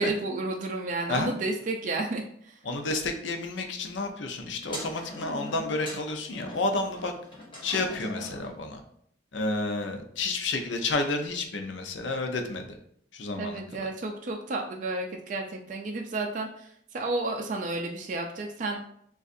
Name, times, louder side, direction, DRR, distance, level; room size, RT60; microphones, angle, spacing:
voice 1, 0.0-2.6 13.4-18.8, right 2 dB, 40° right, 2 dB, 0.3 m, -31 dB
voice 2, 2.6-7.1 7.6-8.8 9.3-12.7 13.1-13.6, left 2 dB, 75° left, 5 dB, 0.6 m, -30 dB
sound 1, 4.6-8.6, left 1 dB, 25° left, 1.1 m, -41 dB
6.5 x 2.4 x 2.5 m, 0.69 s
head